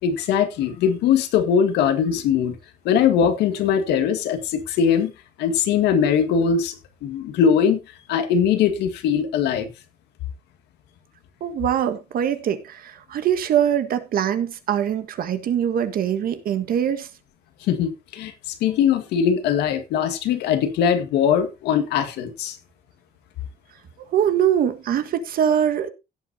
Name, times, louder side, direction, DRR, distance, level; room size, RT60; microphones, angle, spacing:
voice 1, 0.0-2.6 2.9-5.1 5.4-6.8 7.0-7.8 8.1-9.7 17.7-22.6, left 7 dB, 85° left, 1.9 m, -21 dB
voice 2, 11.4-17.1 24.1-25.9, right 9 dB, 60° right, 1.7 m, -23 dB
16.5 x 8.1 x 2.8 m
cardioid pair, 110°, 17 cm